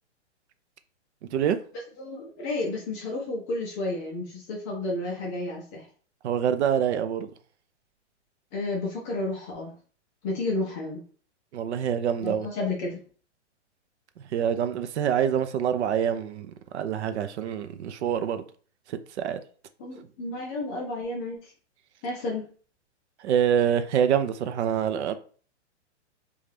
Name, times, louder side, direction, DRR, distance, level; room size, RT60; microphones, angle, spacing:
voice 1, 1.2-1.6 6.2-7.3 11.5-12.5 14.3-18.4 18.9-19.4 23.2-25.2, right 8 dB, 65° right, 0.5 m, -26 dB
voice 2, 2.0-5.9 8.5-9.7 10.2-11.0 12.2-13.0 19.8-21.5 22.0-22.4, left 2 dB, 15° left, 0.4 m, -31 dB
2.6 x 2.3 x 3.3 m
hypercardioid pair, 140°, 36 cm